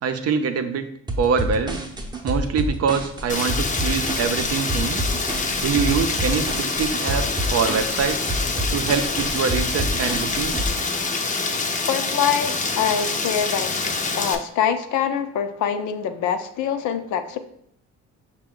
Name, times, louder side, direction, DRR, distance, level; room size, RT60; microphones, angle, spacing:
voice 1, 0.0-0.8 1.2-1.8 2.2-5.0 5.6-8.3 8.7-10.6, right 6 dB, 55° right, 8 dB, 0.5 m, -24 dB
sound 1, 1.1-10.7, equal, 15° right, 0.7 m, -28 dB
Rain, 3.3-14.4, left 3 dB, 25° left, 0.5 m, -26 dB
voice 2, 11.9-13.8 14.2-17.4, left 8 dB, 75° left, 9 dB, 0.5 m, -24 dB
5.8 x 2.2 x 3.6 m, 0.70 s
cardioid pair, 90°, 30 cm